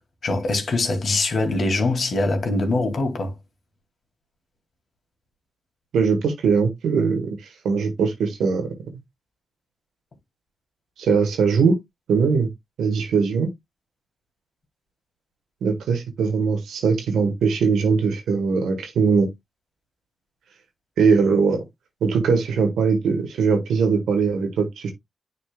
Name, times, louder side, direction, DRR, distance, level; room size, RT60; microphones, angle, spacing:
voice 1, 0.2-3.3, left 2 dB, 60° left, 2.2 m, -23 dB
voice 2, 5.9-7.4 7.6-8.7 11.0-11.8 12.1-12.5 12.8-13.5 15.6-19.3 21.0-21.6 22.0-24.9, right 5 dB, 85° right, 1.4 m, -20 dB
9.8 x 4.3 x 2.2 m
supercardioid pair, 45°, 0 cm